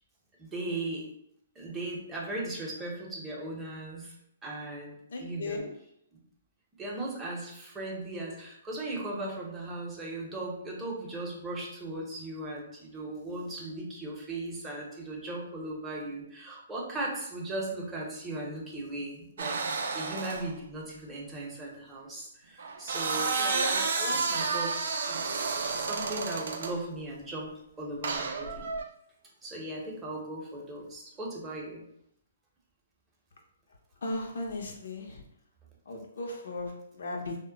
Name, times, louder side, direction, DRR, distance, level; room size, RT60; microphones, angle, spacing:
voice 1, 0.4-1.0 1.6-4.1 4.4-5.6 6.1-6.2 6.8-19.6 19.9-25.4 25.8-27.5 27.8-28.7 29.4-31.8, right 2 dB, 15° right, -3 dB, 0.7 m, -38 dB
voice 2, 5.1-5.7 34.0-35.2 35.9-37.4, left 2 dB, 75° left, 2 dB, 0.6 m, -36 dB
sound 1, 19.4-20.5 22.6-26.8 28.0-28.8, right 4 dB, 70° right, 0.4 m, -31 dB
2.1 x 2.0 x 3.8 m, 0.75 s
hypercardioid pair, 145°, 0 cm